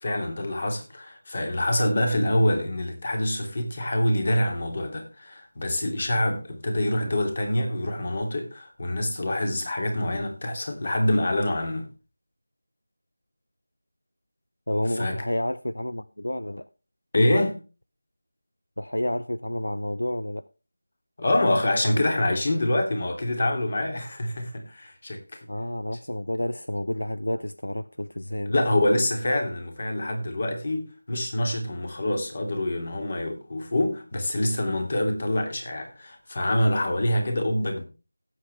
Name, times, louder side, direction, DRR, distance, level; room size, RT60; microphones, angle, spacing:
voice 1, 0.0-11.9 14.9-15.2 17.1-17.6 21.2-25.4 28.5-37.8, left 1 dB, 40° left, 2.8 m, -26 dB
voice 2, 14.7-16.7 18.8-20.4 25.5-28.5, left 1 dB, 80° left, 0.6 m, -30 dB
17.5 x 7.8 x 3.3 m
figure-of-eight pair, 165°, 0 cm